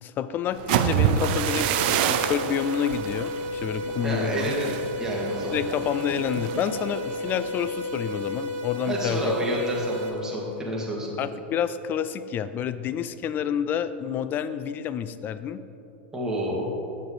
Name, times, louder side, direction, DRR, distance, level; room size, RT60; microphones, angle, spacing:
voice 1, 0.0-4.5 5.5-9.3 11.2-15.6, left 9 dB, 35° left, 13 dB, 0.4 m, -29 dB
sound 1, 0.5-8.4 8.7-9.1 9.4-9.8, right 9 dB, 60° right, 0.5 m, -28 dB
sound 2, 1.1-10.1, left 1 dB, 40° right, 1.3 m, -33 dB
voice 2, 4.0-5.6 8.9-11.2 16.1-16.7, right 1 dB, 10° right, -4 dB, 1.9 m, -29 dB
8.2 x 6.8 x 3.9 m, 2.9 s
hypercardioid pair, 115°, 6 cm